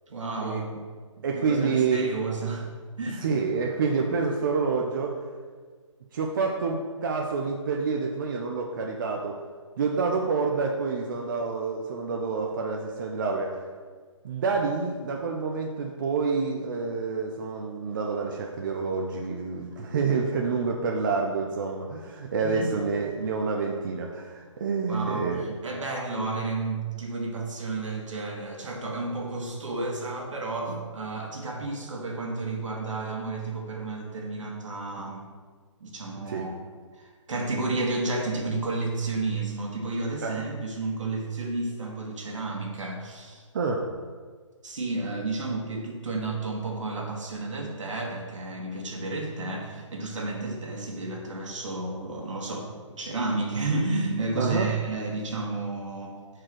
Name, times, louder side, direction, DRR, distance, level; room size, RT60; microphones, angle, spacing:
voice 1, 0.1-0.7 1.3-3.2 22.4-22.7 24.9-35.2 35.8-36.5 36.9-43.4 44.6-56.2, right 3 dB, 70° right, 0 dB, 1.6 m, -31 dB
voice 2, 1.2-2.1 3.2-5.2 6.1-9.4 9.8-13.6 14.2-25.6 36.3-36.4 40.2-40.4 43.5-43.9 54.4-54.7, right 4 dB, 40° right, 0 dB, 0.6 m, -28 dB
4.8 x 4.7 x 6.0 m, 1.5 s
hypercardioid pair, 150°, 17 cm